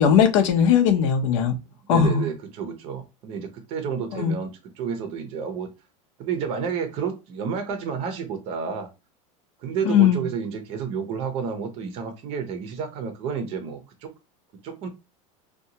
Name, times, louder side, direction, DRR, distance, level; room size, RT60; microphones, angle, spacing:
voice 1, 0.0-1.6 1.9-2.3 4.2-4.4 9.9-10.3, left 8 dB, 70° left, 0.7 m, -19 dB
voice 2, 1.8-5.7 6.2-8.9 9.6-14.1 14.6-14.9, right 6 dB, 35° right, 0.6 m, -30 dB
2.7 x 2.2 x 2.7 m
supercardioid pair, 165°, 17 cm